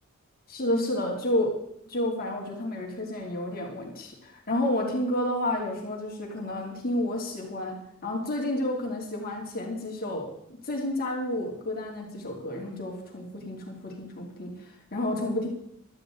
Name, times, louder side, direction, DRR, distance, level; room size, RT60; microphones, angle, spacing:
voice 1, 0.5-1.5 1.8-10.3 10.6-15.5, left 1 dB, 45° left, -1 dB, 3.0 m, -30 dB
17.0 x 12.5 x 3.9 m, 0.78 s
head